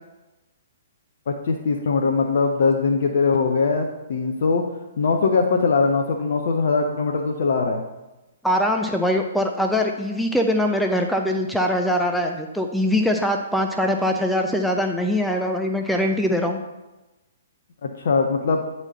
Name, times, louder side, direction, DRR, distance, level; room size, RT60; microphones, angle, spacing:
voice 1, 1.3-4.7 5.0-7.8 17.8-18.7, left 4 dB, 55° left, 3 dB, 0.6 m, -21 dB
voice 2, 8.4-16.6, left 1 dB, ahead, 2 dB, 0.5 m, -22 dB
8.8 x 4.3 x 4.1 m, 1.0 s
figure-of-eight pair, 120°, 0 cm